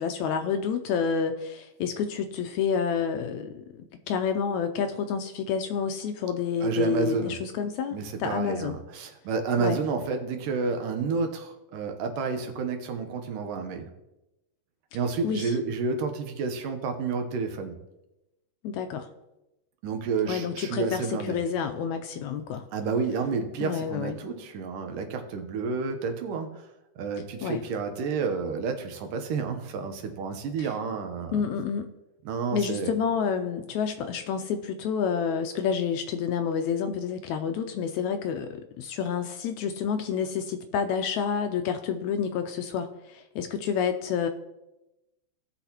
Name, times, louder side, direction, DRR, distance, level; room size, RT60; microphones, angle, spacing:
voice 1, 0.0-8.8 9.6-9.8 15.2-15.5 18.6-19.1 20.2-22.6 23.6-24.2 27.4-27.6 30.6-30.7 31.3-31.9 32.5-44.3, left 7 dB, 80° left, 7 dB, 1.7 m, -29 dB
voice 2, 6.6-7.4 7.9-13.9 14.9-17.8 19.8-21.4 22.7-26.6 27.0-31.4 32.3-32.9, right 4 dB, 80° right, 6 dB, 2.6 m, -30 dB
17.5 x 6.1 x 2.9 m, 0.95 s
omnidirectional pair, 3.8 m